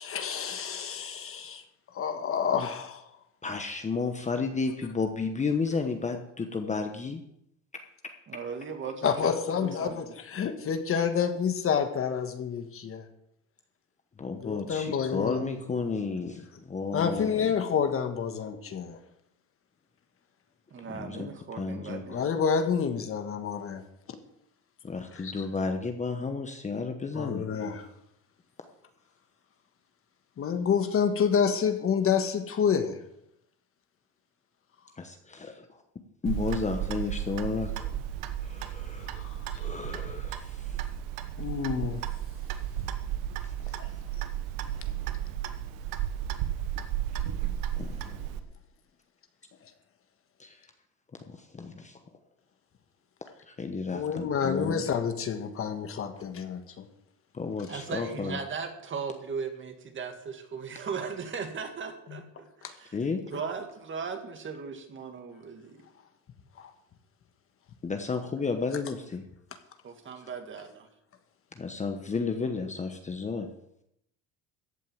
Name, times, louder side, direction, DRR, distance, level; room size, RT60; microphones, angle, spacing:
voice 1, 0.0-1.6 1.9-3.0 9.0-13.0 14.4-15.4 16.9-19.0 22.1-23.8 25.1-25.4 27.1-27.9 30.4-33.0 39.0-39.5 41.4-42.0 43.7-43.9 53.9-56.9 62.1-62.2 62.6-62.7 66.6-66.7, left 7 dB, 40° left, 8 dB, 1.5 m, -29 dB
voice 2, 3.4-7.2 7.7-7.8 14.2-17.5 20.9-21.3 21.5-22.0 24.8-27.5 35.0-35.7 36.2-37.9 38.4-39.2 39.6-40.7 47.8-48.3 50.4-50.6 51.1-52.0 53.5-54.8 57.3-58.4 62.9-63.2 67.8-69.3 71.6-73.5, left 4 dB, 20° left, 5 dB, 1.1 m, -32 dB
voice 3, 8.3-10.0 20.7-22.3 57.7-63.0 63.3-65.8 69.8-70.9, right 5 dB, 35° right, 5 dB, 2.1 m, -38 dB
Clock, 36.3-48.4, right 11 dB, 85° right, 1.2 m, -34 dB
14.5 x 5.4 x 9.1 m, 0.78 s
cardioid pair, 115°, 34 cm